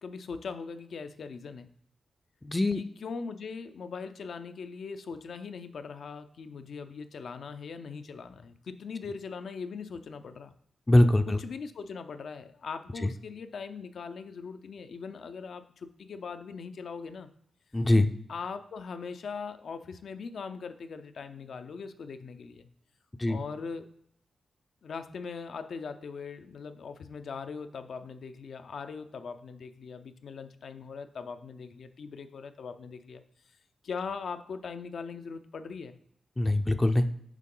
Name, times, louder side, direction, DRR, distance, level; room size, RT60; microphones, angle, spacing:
voice 1, 0.0-1.7 2.7-10.5 11.3-17.3 18.3-22.7 23.3-23.9 24.8-33.2 33.8-35.9, left 5 dB, 70° left, 9 dB, 0.5 m, -40 dB
voice 2, 2.4-2.8 10.9-11.4 13.0-13.1 17.7-18.1 23.2-23.4 36.4-37.1, left 1 dB, 15° left, 7 dB, 0.4 m, -22 dB
8.3 x 3.7 x 3.8 m, 0.73 s
cardioid pair, 90°, 0 cm